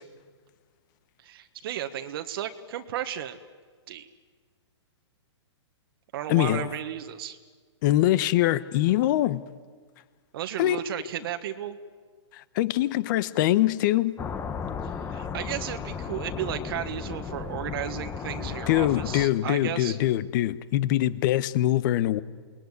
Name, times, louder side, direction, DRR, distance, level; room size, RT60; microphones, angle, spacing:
voice 1, 1.2-3.4 3.9-4.1 6.1-7.4 10.3-11.8 14.8-20.0, right 10 dB, 50° right, 1.5 m, -34 dB
voice 2, 6.3-6.7 7.8-9.4 10.6-10.8 12.3-14.2 18.7-22.2, left 14 dB, 40° left, 1.1 m, -23 dB
sound 1, 14.2-19.3, left 6 dB, 15° left, 1.0 m, -35 dB
28.5 x 20.5 x 9.7 m
hypercardioid pair, 145°, 15 cm